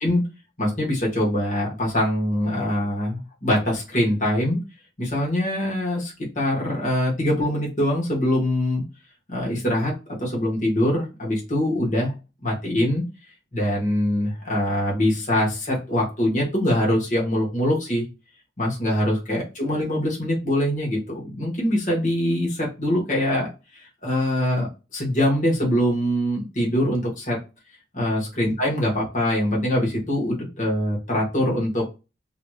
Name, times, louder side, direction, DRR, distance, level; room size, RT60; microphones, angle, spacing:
voice 1, 0.6-4.6 5.0-8.8 9.3-9.9 10.2-12.1 12.4-13.0 13.5-18.0 18.6-23.5 23.8-24.7 24.9-27.4 27.9-31.8, left 1 dB, 45° left, -4 dB, 1.6 m, -23 dB
4.0 x 3.0 x 2.4 m, 0.29 s
head